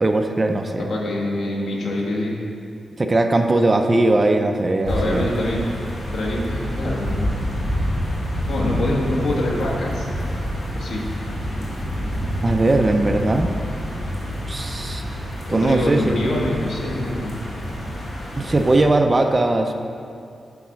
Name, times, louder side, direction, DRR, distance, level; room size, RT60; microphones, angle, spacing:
voice 1, 0.0-0.8 3.0-5.3 12.4-13.5 14.5-15.0 15.5-16.2 18.4-19.7, right 2 dB, 25° right, 5 dB, 0.4 m, -19 dB
voice 2, 0.8-2.4 4.9-5.6 6.1-7.3 8.5-10.1 10.7-11.1 15.5-17.4, left 1 dB, 80° left, -2 dB, 1.4 m, -25 dB
sound 1, 4.8-18.9, equal, 50° left, 2.0 m, -27 dB
8.4 x 4.1 x 6.0 m, 2.4 s
wide cardioid pair, 160°, 0 cm